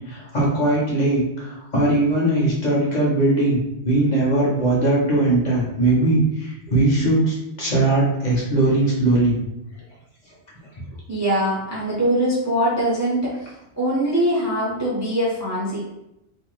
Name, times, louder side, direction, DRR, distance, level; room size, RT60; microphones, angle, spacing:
voice 1, 0.1-9.4, right 2 dB, 45° left, -6 dB, 0.8 m, -20 dB
voice 2, 11.1-15.8, right 1 dB, 20° right, -7 dB, 0.4 m, -22 dB
2.5 x 2.1 x 3.1 m, 0.88 s
omnidirectional pair, 1.1 m